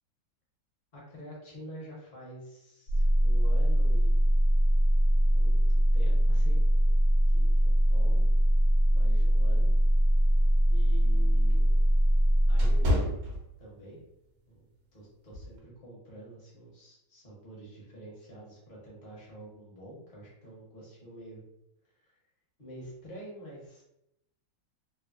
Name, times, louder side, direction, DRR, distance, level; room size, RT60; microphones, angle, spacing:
voice 1, 0.9-4.1 5.1-6.6 7.3-8.3 8.9-9.7 10.7-11.8 12.5-13.1 13.6-14.0 14.5-14.7 14.9-21.4 21.9-22.1 22.6-23.8, right 1 dB, 40° left, -5 dB, 0.7 m, -47 dB
sound 1, 2.9-12.9, equal, 60° left, 1.2 m, -22 dB
sound 2, 10.3-14.0 14.5-14.7 15.3-15.6, left 1 dB, 65° right, 0.9 m, -32 dB
3.4 x 2.0 x 2.4 m, 0.81 s
omnidirectional pair, 2.0 m